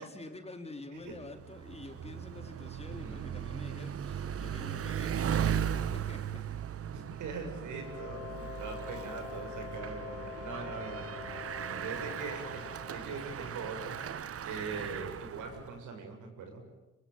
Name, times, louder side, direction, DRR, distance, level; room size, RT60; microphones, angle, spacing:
voice 1, 0.0-6.4, left 2 dB, 20° left, 5 dB, 3.9 m, -47 dB
Bicycle, 1.1-15.7, right 8 dB, 50° right, 1.1 m, -37 dB
voice 2, 2.9-3.3 6.9-14.0 14.4-16.6, right 4 dB, 80° right, 4 dB, 7.2 m, -42 dB
sound 1, 7.7-14.3, left 7 dB, 85° left, 5.7 m, -46 dB
25.5 x 24.0 x 9.3 m, 1.0 s
cardioid pair, 90°, 30 cm